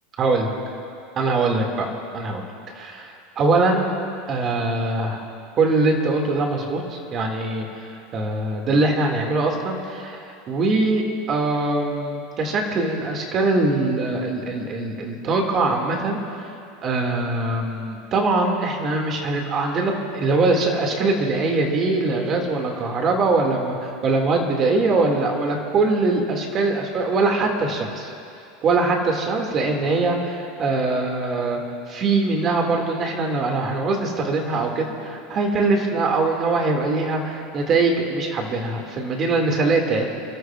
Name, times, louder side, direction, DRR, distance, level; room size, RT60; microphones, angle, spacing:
voice 1, 0.2-0.5 1.2-1.9 2.1-2.5 2.8-4.0 4.3-5.2 5.6-7.7 8.1-16.2 16.8-28.1 28.6-31.6 31.9-40.2, right 3 dB, 30° right, 1 dB, 2.0 m, -22 dB
29.5 x 13.0 x 2.4 m, 2.5 s
supercardioid pair, 155°, 0 cm